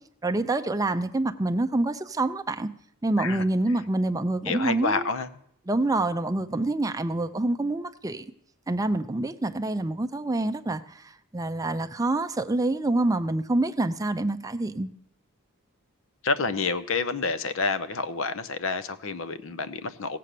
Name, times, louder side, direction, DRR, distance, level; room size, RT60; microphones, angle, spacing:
voice 1, 0.2-2.7 3.0-5.1 5.7-8.3 8.7-14.9, right 2 dB, 15° right, 9 dB, 0.5 m, -26 dB
voice 2, 4.5-5.3 16.2-20.2, left 4 dB, 65° left, 13 dB, 0.7 m, -28 dB
16.5 x 7.6 x 6.8 m, 0.71 s
head